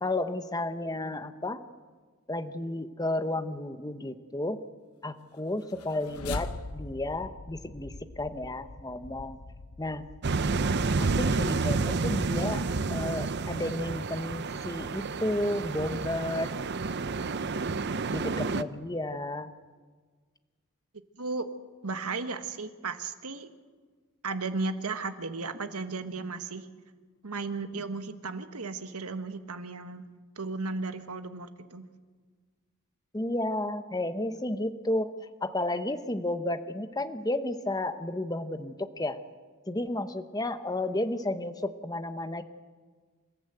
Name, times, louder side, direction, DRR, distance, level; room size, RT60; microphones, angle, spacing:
voice 1, 0.0-1.6 2.3-4.6 5.0-9.4 9.8-10.0 11.0-12.6 12.9-16.5 18.1-19.5 33.1-35.1 35.4-39.2 39.7-42.4, left 1 dB, 15° left, 9 dB, 0.9 m, -32 dB
sound 1, 5.6-10.9, left 3 dB, 80° left, 0.8 m, -41 dB
sound 2, 10.2-18.6, right 3 dB, 50° right, 0.6 m, -30 dB
voice 2, 21.2-21.5 21.8-23.5 24.2-26.7 27.2-30.0 30.4-31.9, right 3 dB, 80° right, 9 dB, 1.4 m, -35 dB
27.5 x 14.5 x 8.0 m, 1.5 s
head